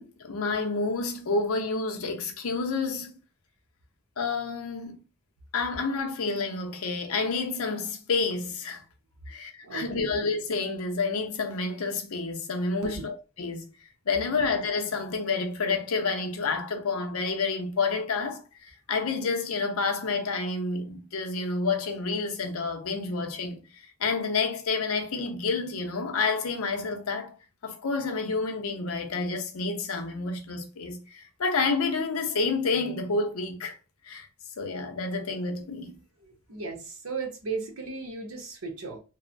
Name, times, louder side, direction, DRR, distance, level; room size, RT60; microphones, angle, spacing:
voice 1, 0.0-3.1 4.2-5.0 5.5-8.8 9.3-13.7 14.1-23.6 24.0-27.3 27.6-33.7 34.1-34.3 34.6-36.0, left 4 dB, 85° left, 0.6 m, -29 dB
voice 2, 9.6-10.1 12.9-13.0 14.3-14.5 36.2-39.0, right 4 dB, 85° right, 0.9 m, -36 dB
2.9 x 2.0 x 2.5 m
head